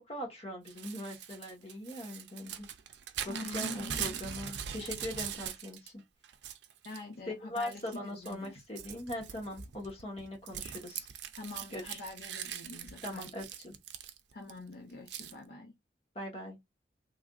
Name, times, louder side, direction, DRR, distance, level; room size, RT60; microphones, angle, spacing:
voice 1, 0.0-2.7 3.2-6.0 7.3-11.1 11.7-12.0 13.0-13.8 16.1-16.6, left 1 dB, 35° left, 1.1 m, -41 dB
Crumpling crinkling / Tearing, 0.7-5.9 6.2-7.0 7.6-8.0 8.3-14.5 15.1-15.3, right 9 dB, 75° right, 0.5 m, -41 dB
voice 2, 3.3-4.2 6.8-8.6 11.3-13.3 14.3-15.7, left 2 dB, 60° left, 0.6 m, -45 dB
3.3 x 2.5 x 2.3 m
head